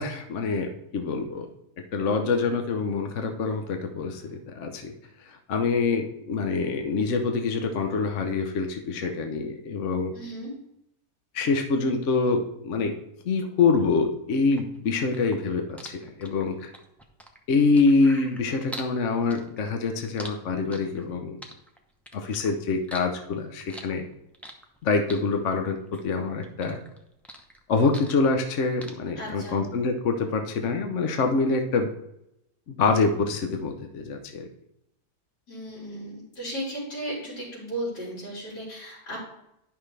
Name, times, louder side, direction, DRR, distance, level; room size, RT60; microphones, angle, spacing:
voice 1, 0.0-1.5 1.9-4.9 5.2-10.1 11.3-12.9 13.3-16.7 17.5-21.4 22.1-24.0 24.8-26.8 27.7-31.9 32.7-34.5, left 4 dB, 55° left, 4 dB, 1.0 m, -25 dB
voice 2, 10.1-10.5 29.2-29.6 35.5-39.2, right 1 dB, 75° left, -7 dB, 4.1 m, -35 dB
sound 1, 14.5-18.9 19.3-21.1 21.4-22.5 22.8-24.8 25.1-26.2 26.4-28.5 28.8-28.9, equal, ahead, 0.6 m, -42 dB
11.0 x 5.8 x 3.3 m, 0.81 s
omnidirectional pair, 1.8 m